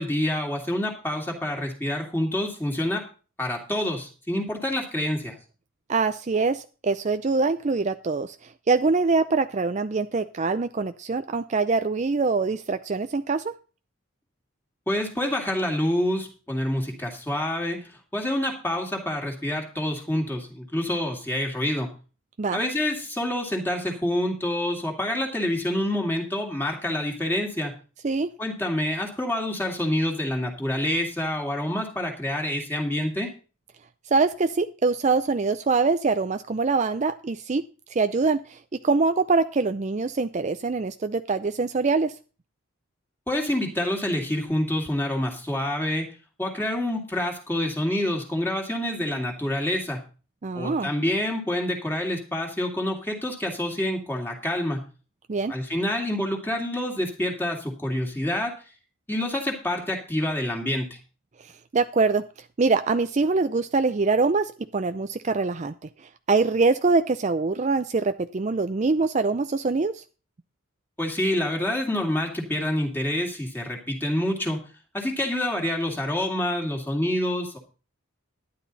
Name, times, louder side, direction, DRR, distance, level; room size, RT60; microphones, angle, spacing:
voice 1, 0.0-3.0 3.4-5.3 14.9-21.9 22.5-27.7 28.4-33.3 43.3-46.1 46.4-50.0 50.5-54.8 55.5-58.6 59.1-60.9 71.0-74.6 74.9-77.6, left 1 dB, 10° left, 0 dB, 2.4 m, -27 dB
voice 2, 5.9-13.5 22.4-22.6 28.0-28.3 34.1-37.6 37.9-38.6 38.8-42.1 50.4-50.9 55.3-55.5 61.4-62.2 62.6-65.7 66.3-70.0, right 4 dB, 35° right, 10 dB, 0.4 m, -24 dB
12.0 x 10.5 x 4.1 m, 0.35 s
head